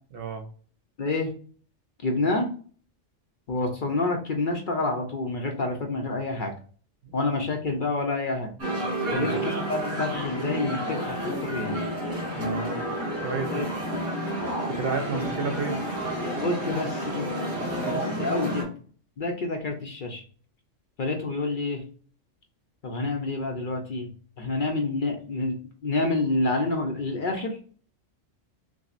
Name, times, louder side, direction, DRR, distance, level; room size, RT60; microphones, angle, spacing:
voice 1, 0.1-0.5 7.0-7.2 9.1-9.4 12.3-12.8 13.2-13.7 14.7-15.8 17.4-17.6, right 4 dB, 55° right, 4 dB, 0.8 m, -32 dB
voice 2, 1.0-1.3 2.0-2.5 3.5-6.5 7.1-8.5 9.1-11.8 13.5-13.7 16.4-17.3 17.9-18.7 19.2-20.2 21.0-21.8 22.8-24.1 24.4-25.6 25.8-27.6, left 2 dB, 50° left, 2 dB, 0.7 m, -28 dB
sound 1, 8.6-18.6, equal, 80° right, 2.5 m, -30 dB
6.0 x 2.0 x 2.5 m, 0.43 s
omnidirectional pair, 1.3 m